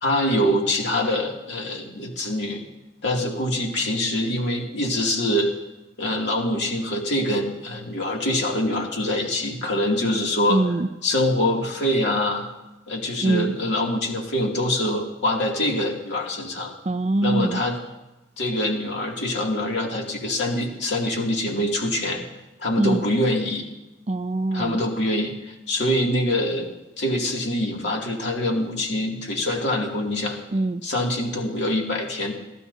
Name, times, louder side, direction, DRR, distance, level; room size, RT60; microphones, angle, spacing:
voice 1, 0.0-2.6 3.0-5.5 6.0-10.6 11.0-12.5 12.9-16.7 17.2-17.8 18.4-22.2 22.6-23.6 24.5-30.4 30.8-32.3, left 1 dB, 65° left, -1 dB, 2.6 m, -24 dB
voice 2, 10.5-10.9 13.2-13.5 16.9-17.6 22.8-23.0 24.1-24.8 30.5-30.8, right 2 dB, 35° right, 10 dB, 0.4 m, -23 dB
28.5 x 12.5 x 2.8 m, 0.99 s
head